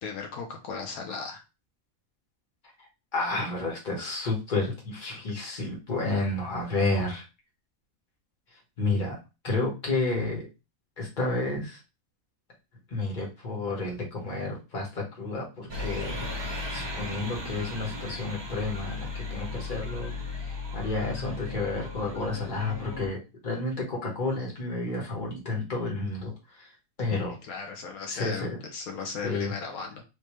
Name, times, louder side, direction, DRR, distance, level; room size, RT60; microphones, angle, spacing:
voice 1, 0.0-1.4 27.1-30.0, left 5 dB, 85° left, 3 dB, 1.2 m, -36 dB
voice 2, 2.8-7.2 8.8-9.1 9.4-10.5 11.0-11.8 12.9-16.3 16.7-20.1 20.7-23.2 23.4-26.7 27.0-27.3 28.1-28.6 29.2-29.5, left 2 dB, 35° left, -2 dB, 1.4 m, -31 dB
sound 1, 15.7-23.1, left 2 dB, 25° right, 0.6 m, -36 dB
3.3 x 2.8 x 3.1 m, 0.28 s
omnidirectional pair, 1.5 m